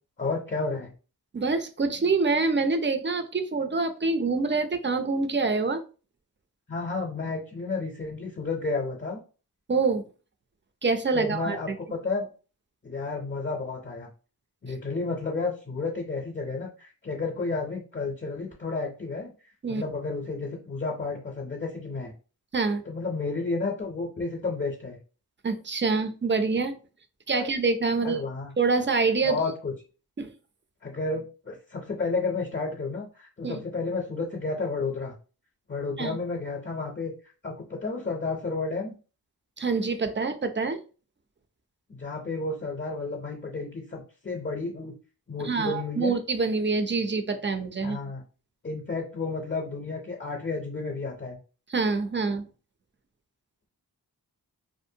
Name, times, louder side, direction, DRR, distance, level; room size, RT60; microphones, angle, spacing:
voice 1, 0.2-0.9 6.7-9.2 11.1-12.3 12.8-14.1 14.6-19.3 19.7-22.1 22.9-25.0 27.3-27.5 28.0-28.5 29.2-29.7 30.8-35.1 35.7-37.1 37.4-38.9 41.9-44.9 45.3-46.2 47.8-48.2 48.6-51.4, left 3 dB, 30° left, 0 dB, 0.6 m, -31 dB
voice 2, 1.3-5.8 9.7-10.1 10.8-11.8 19.6-19.8 22.5-22.8 25.4-26.7 27.3-28.3 28.6-29.4 30.2-30.3 33.4-33.6 36.0-36.2 39.6-40.8 45.4-48.0 51.7-52.5, right 4 dB, 30° right, 8 dB, 0.4 m, -26 dB
2.6 x 2.1 x 2.7 m, 0.35 s
wide cardioid pair, 45°, 39 cm